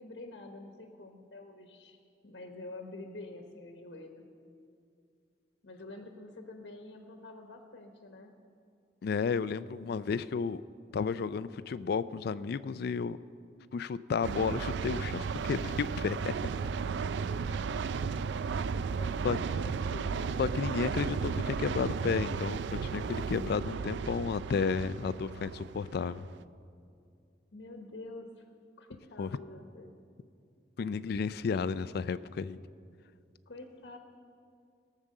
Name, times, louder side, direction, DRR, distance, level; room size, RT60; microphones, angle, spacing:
voice 1, 0.0-2.0 2.2-4.2 5.6-8.3 17.5-17.8 18.1-18.5 18.9-20.3 27.5-28.4 28.8-29.9 30.8-30.9 33.5-34.0, left 2 dB, 85° left, 4 dB, 1.1 m, -47 dB
voice 2, 9.0-10.6 10.9-13.2 13.7-16.2 19.2-19.4 20.4-26.3 29.2-29.3 30.8-32.6, left 5 dB, 60° left, 15 dB, 0.3 m, -32 dB
sound 1, 14.2-26.4, right 5 dB, 85° right, 0.4 m, -34 dB
17.5 x 7.3 x 6.5 m, 2.4 s
head